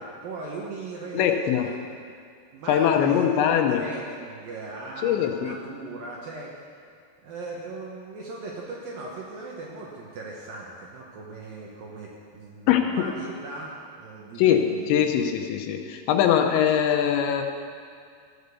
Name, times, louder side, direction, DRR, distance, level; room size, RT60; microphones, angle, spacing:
voice 1, 0.0-2.0 2.5-3.3 3.7-6.8 7.2-15.0, right 3 dB, 70° right, -2 dB, 2.3 m, -38 dB
voice 2, 1.1-1.7 2.7-3.8 5.0-5.6 12.7-13.0 14.4-17.4, left 9 dB, 80° left, 5 dB, 3.0 m, -22 dB
14.0 x 6.6 x 6.8 m, 2.2 s
omnidirectional pair, 5.2 m